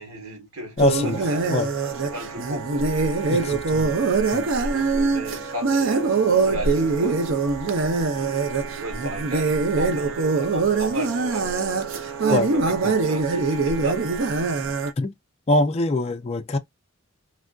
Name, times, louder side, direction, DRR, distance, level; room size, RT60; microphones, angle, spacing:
voice 1, 0.0-1.5 1.8-3.0 4.5-7.5 8.1-14.7, right 2 dB, 80° right, 1.4 m, -35 dB
voice 2, 0.8-1.2 1.5-1.7 3.3-4.0 4.3-4.5 12.3-12.5 12.8-12.9 15.0-15.1 15.5-16.6, left 2 dB, 30° left, 0.4 m, -23 dB
sound 1, 0.8-14.9, right 4 dB, 60° right, 0.5 m, -23 dB
3.3 x 2.5 x 2.2 m
head